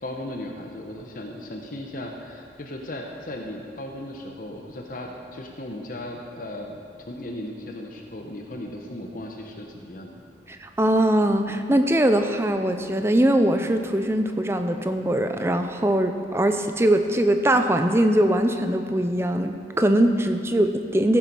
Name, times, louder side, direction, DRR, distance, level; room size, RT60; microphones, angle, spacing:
voice 1, 0.0-10.1, left 1 dB, 45° left, 2 dB, 0.9 m, -36 dB
voice 2, 10.5-21.2, right 1 dB, 15° right, 7 dB, 0.5 m, -21 dB
14.5 x 7.2 x 5.4 m, 2.5 s
head